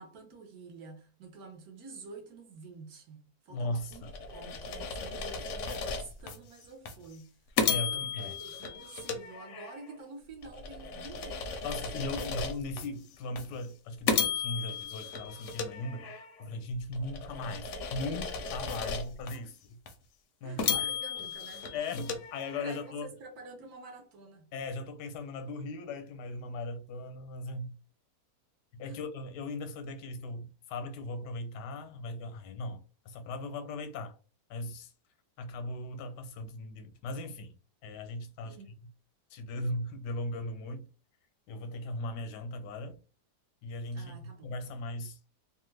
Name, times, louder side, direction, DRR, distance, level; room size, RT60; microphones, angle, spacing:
voice 1, 0.0-7.4 7.9-12.4 12.7-12.9 18.7-19.0 19.3-19.5 20.4-21.7 22.6-24.5 28.8-29.0 38.4-38.7 43.9-44.5, right 3 dB, 70° right, 1.2 m, -49 dB
voice 2, 3.5-4.1 7.7-8.4 11.6-19.5 20.4-20.8 21.7-23.1 24.5-27.7 28.7-32.8 33.0-34.2 34.5-34.9 35.4-37.5 37.8-38.6 39.3-40.9 41.5-43.0 43.6-45.2, left 2 dB, 90° left, 1.2 m, -38 dB
sound 1, 3.9-6.4 6.9-7.0 7.6-9.9 10.4-12.9 13.4-13.5 14.1-16.4 16.9-19.4 19.9-20.0 20.6-22.9, left 6 dB, 65° left, 0.7 m, -35 dB
3.0 x 2.3 x 3.1 m
omnidirectional pair, 1.8 m